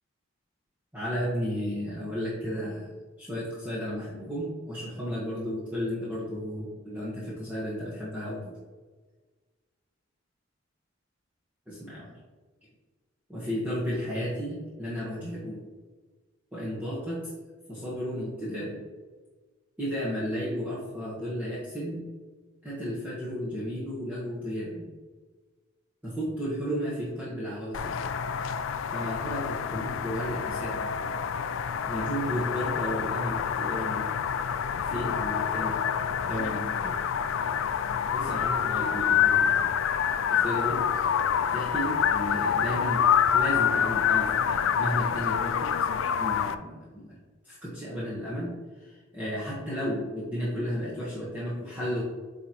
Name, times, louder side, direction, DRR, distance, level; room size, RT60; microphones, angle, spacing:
voice 1, 0.9-2.9 3.2-8.6 11.7-12.2 13.3-15.6 16.5-17.2 17.7-18.8 19.8-22.0 22.6-24.9 26.0-28.0 28.9-30.9 31.9-34.1 34.8-35.8 36.2-37.0 38.1-39.7 40.3-41.1 41.5-43.1 43.3-45.7 46.2-47.2 47.4-52.0, equal, 10° right, -9 dB, 1.3 m, -33 dB
sound 1, 27.7-46.5, left 8 dB, 75° left, 0.3 m, -27 dB
8.8 x 4.0 x 3.0 m, 1.3 s
head